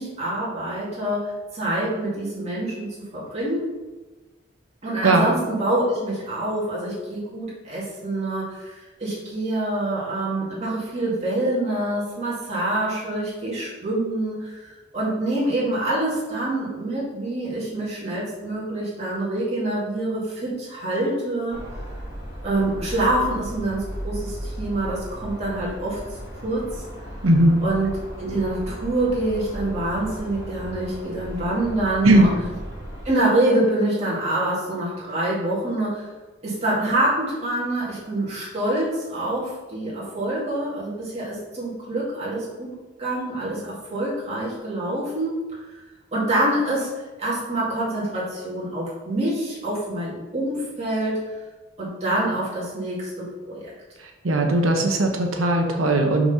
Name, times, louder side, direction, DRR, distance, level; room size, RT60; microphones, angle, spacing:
voice 1, 0.0-3.7 4.8-21.6 22.4-26.0 26.4-26.7 27.6-27.9 28.2-32.3 33.0-36.1 36.4-42.7 43.0-45.4 46.1-46.9 47.2-51.3 51.8-53.7, right 1 dB, 30° right, -7 dB, 2.3 m, -26 dB
sound 1, 21.5-33.1, equal, 15° right, 1.9 m, -36 dB
voice 2, 27.2-27.6 32.0-32.3 54.2-56.3, right 1 dB, 90° right, 3 dB, 0.9 m, -18 dB
5.8 x 4.1 x 5.6 m, 1.2 s
head